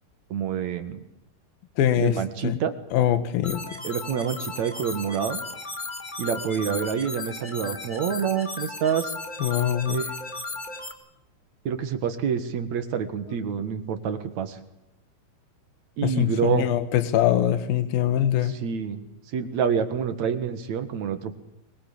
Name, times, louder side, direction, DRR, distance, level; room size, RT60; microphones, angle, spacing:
voice 1, 0.3-1.0 1.9-2.7 3.8-5.4 6.2-9.1 9.9-10.1 11.6-14.6 16.0-16.7 18.4-19.0 19.3-21.3, right 7 dB, 55° right, 9 dB, 2.3 m, -27 dB
voice 2, 1.8-2.1 2.4-2.6 2.9-3.6 9.4-10.0 16.0-18.6, left 11 dB, 65° left, 11 dB, 3.2 m, -23 dB
sound 1, 3.4-10.9, left 2 dB, 40° left, 0.6 m, -35 dB
23.0 x 21.5 x 8.7 m, 0.86 s
omnidirectional pair, 5.0 m